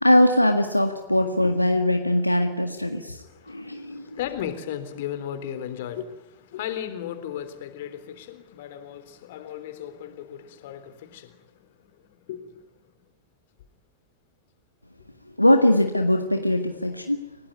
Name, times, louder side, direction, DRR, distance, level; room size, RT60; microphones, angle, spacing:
voice 1, 0.0-4.1 15.4-17.2, left 1 dB, 90° left, 1.8 m, -21 dB
voice 2, 3.2-12.9, left 10 dB, 55° left, 3.6 m, -36 dB
29.5 x 18.5 x 9.6 m
figure-of-eight pair, 90°, 0 cm